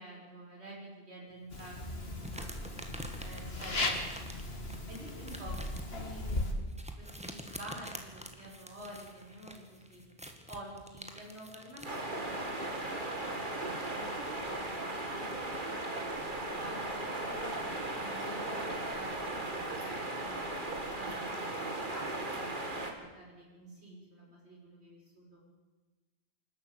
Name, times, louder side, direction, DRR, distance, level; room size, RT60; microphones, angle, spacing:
voice 1, 0.0-2.1 2.3-2.5 3.2-4.5 4.9-10.0 10.5-15.9 16.2-17.6 17.9-20.5 20.9-25.4, right 1 dB, 75° right, -2 dB, 6.6 m, -50 dB
sound 1, 1.5-6.5, left 2 dB, 65° left, 2.6 m, -37 dB
sound 2, 1.5-12.0, equal, 5° right, 1.9 m, -47 dB
sound 3, 11.8-22.9, right 2 dB, 50° right, 2.6 m, -37 dB
27.5 x 12.0 x 8.3 m, 1.2 s
omnidirectional pair, 1.1 m